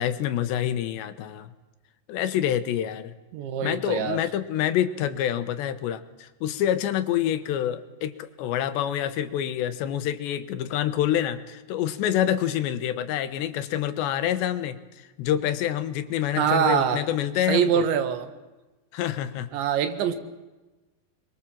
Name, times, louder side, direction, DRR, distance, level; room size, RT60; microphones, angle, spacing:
voice 1, 0.0-1.5 2.1-3.2 3.6-14.8 15.2-17.8 18.9-19.5, left 11 dB, 80° left, 11 dB, 3.4 m, -27 dB
voice 2, 3.3-4.2 16.4-17.0 17.5-18.3 19.5-20.2, right 8 dB, 90° right, 9 dB, 4.0 m, -24 dB
28.0 x 23.0 x 7.5 m, 1.1 s
omnidirectional pair, 5.0 m